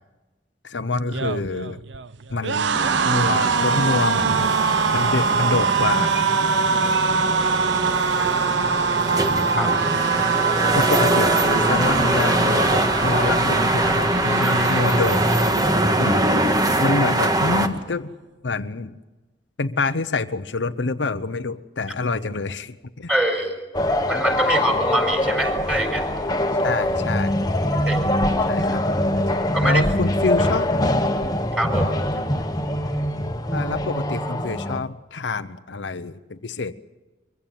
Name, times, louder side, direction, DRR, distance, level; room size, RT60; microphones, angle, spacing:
voice 1, 0.6-1.8 2.3-4.5 4.9-6.3 9.5-9.9 10.7-15.6 16.0-16.4 16.8-18.1 18.4-19.0 19.6-23.1 26.6-27.4 28.4-28.9 29.3-30.7 31.8-32.2 33.5-36.7, left 3 dB, 80° left, 10 dB, 0.9 m, -26 dB
sound 1, 1.0-16.2 16.5-16.8 17.0-17.8, right 6 dB, 75° right, 0.7 m, -24 dB
sound 2, 2.8-17.7, right 1 dB, 20° right, 1.6 m, -22 dB
voice 2, 23.1-23.6 24.1-26.1 27.8-28.1 29.5-29.8 31.6-31.9, right 1 dB, 5° right, 4 dB, 4.7 m, -24 dB
sound 3, 23.7-34.8, left 1 dB, 20° left, 1.4 m, -23 dB
23.5 x 16.0 x 9.3 m, 1.2 s
head